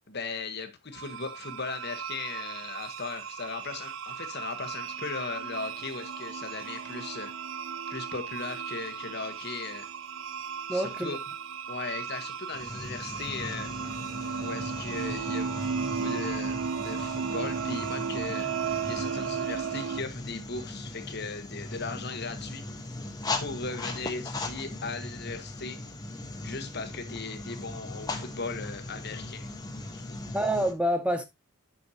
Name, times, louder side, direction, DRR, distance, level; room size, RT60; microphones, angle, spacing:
voice 1, 0.1-7.3 7.9-9.9 10.7-11.2 11.7-13.7 14.4-18.5 18.9-22.6 23.4-25.8 26.4-29.5 29.9-30.2, left 4 dB, 45° left, 1.2 m, -38 dB
sound 1, 0.9-20.0, right 6 dB, 55° right, 0.5 m, -35 dB
voice 2, 10.7-11.2 30.3-31.3, right 1 dB, 5° right, 0.6 m, -27 dB
sound 2, 12.5-30.7, left 2 dB, 15° left, 1.0 m, -39 dB
9.7 x 6.3 x 2.8 m
head